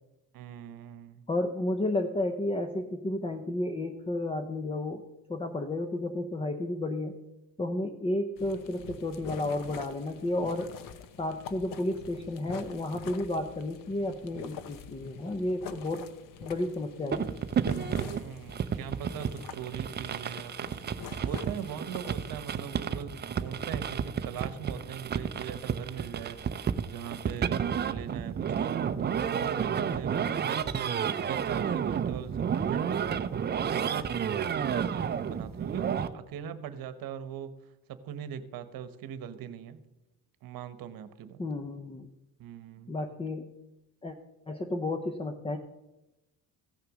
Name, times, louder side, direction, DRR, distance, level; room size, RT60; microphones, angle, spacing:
voice 1, 0.3-1.3 18.0-30.8 31.2-33.3 33.7-37.5 37.9-39.8 40.4-41.4 42.4-42.9, right 9 dB, 60° right, 12 dB, 1.1 m, -41 dB
voice 2, 1.3-5.0 5.3-7.2 7.6-10.7 11.2-16.0 16.4-17.3 41.4-42.1 42.9-43.5 44.0-44.2 44.5-45.6, left 1 dB, 15° left, 7 dB, 0.7 m, -32 dB
sound 1, 8.4-22.6, left 7 dB, 55° left, 0.9 m, -46 dB
sound 2, 17.1-36.1, right 7 dB, 25° right, 0.5 m, -31 dB
15.5 x 6.7 x 6.1 m, 0.97 s
cardioid pair, 130°, 40 cm